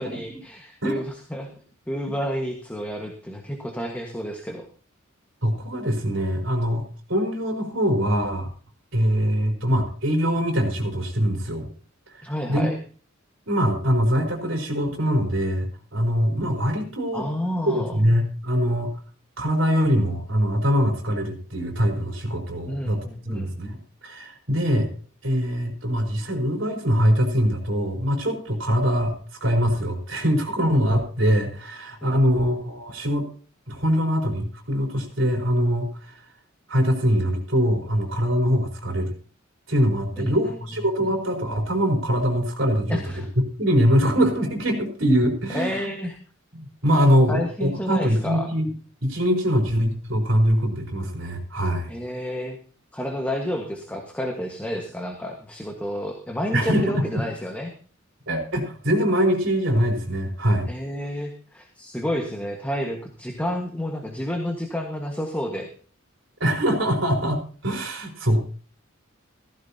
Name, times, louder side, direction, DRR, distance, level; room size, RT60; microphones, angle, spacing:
voice 1, 0.0-1.5 1.9-4.7 12.2-12.8 17.1-18.0 22.7-23.6 32.0-32.4 40.2-40.6 41.0-41.1 42.9-43.3 45.5-46.2 47.3-48.5 51.9-52.6 52.9-57.7 60.7-65.7, equal, 10° left, 2 dB, 1.5 m, -30 dB
voice 2, 5.4-8.5 8.9-11.7 12.5-12.7 13.5-17.3 17.7-18.9 19.4-23.0 23.3-24.9 25.2-29.1 29.4-33.3 33.7-36.2 36.7-39.1 39.7-45.9 46.5-48.7 49.0-51.9 56.5-57.0 58.3-60.7 66.4-68.5, equal, 70° right, 1 dB, 4.2 m, -23 dB
15.5 x 15.0 x 2.8 m, 0.41 s
head